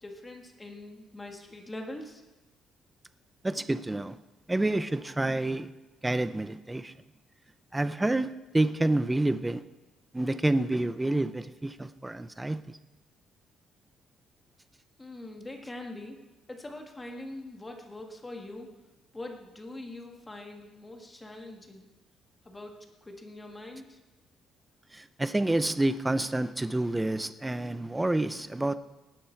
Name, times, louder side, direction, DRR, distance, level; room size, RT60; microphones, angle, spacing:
voice 1, 0.0-2.2 15.0-16.2 16.5-18.7 19.1-21.8 22.4-24.0, left 1 dB, 15° left, 3 dB, 1.6 m, -43 dB
voice 2, 3.4-4.2 4.5-5.7 6.0-6.9 7.7-9.6 10.1-12.8 24.9-28.8, right 2 dB, 10° right, 13 dB, 0.5 m, -28 dB
18.0 x 10.0 x 4.5 m, 1.1 s
cardioid pair, 160°, 0 cm